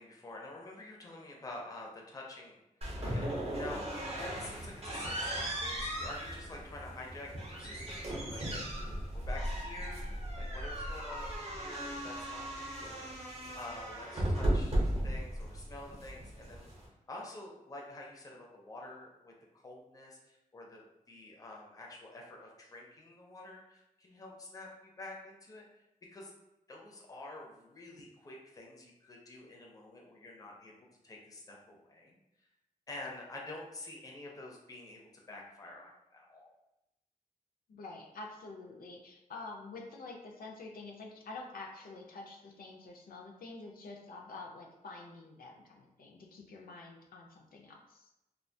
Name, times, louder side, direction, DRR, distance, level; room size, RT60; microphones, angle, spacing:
voice 1, 0.0-2.6 3.1-3.8 4.2-10.0 10.4-13.1 13.5-16.7 17.1-25.6 26.1-26.3 26.7-32.2 32.9-36.5, left 2 dB, 25° left, -1 dB, 0.4 m, -48 dB
sound 1, 2.8-16.9, right 1 dB, 45° right, 0.6 m, -36 dB
voice 2, 37.7-48.1, left 3 dB, 85° left, 0 dB, 0.4 m, -48 dB
2.3 x 2.2 x 2.6 m, 0.91 s
wide cardioid pair, 165°, 15 cm